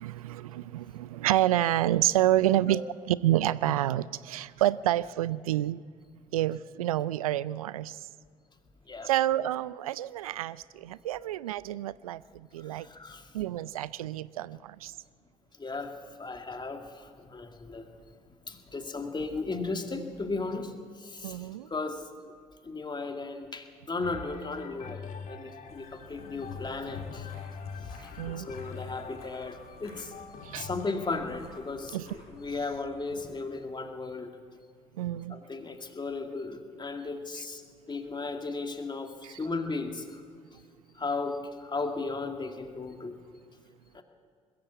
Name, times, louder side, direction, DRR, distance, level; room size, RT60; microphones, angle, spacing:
voice 1, 0.0-5.8 6.3-8.1 9.0-12.9 13.3-14.9 21.2-21.7 28.2-28.5 30.4-30.8 31.9-32.1 32.5-32.6 35.0-35.4 37.3-37.5 39.2-39.5, right 13 dB, 85° right, 20 dB, 0.4 m, -29 dB
voice 2, 12.7-13.3 15.6-17.8 18.5-20.7 21.0-22.0 22.6-27.3 27.9-28.1 28.4-30.1 30.6-34.3 35.3-37.6 37.9-40.2 41.0-43.2 43.9-44.0, left 3 dB, 25° left, 5 dB, 2.4 m, -36 dB
sound 1, 24.0-33.8 34.5-34.6, left 5 dB, 50° left, 1.8 m, -44 dB
sound 2, 25.7-33.4, left 2 dB, 90° left, 6.8 m, -51 dB
21.0 x 14.5 x 8.4 m, 2.1 s
hypercardioid pair, 50°, 18 cm